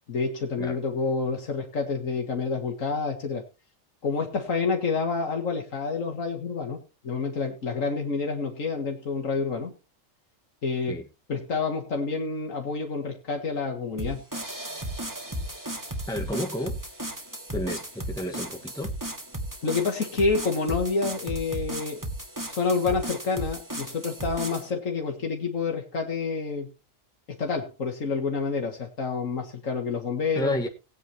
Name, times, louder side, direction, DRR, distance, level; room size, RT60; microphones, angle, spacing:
voice 1, 0.1-3.4 4.0-9.7 10.6-10.9 11.3-14.2 19.6-22.0 22.4-26.7 27.4-30.7, left 4 dB, 80° left, 2.3 m, -28 dB
sound 1, 14.0-24.7, right 1 dB, 15° right, 2.2 m, -35 dB
voice 2, 16.1-16.8 17.5-18.9 30.3-30.7, left 1 dB, 5° left, 1.3 m, -31 dB
19.0 x 9.3 x 2.9 m
omnidirectional pair, 1.3 m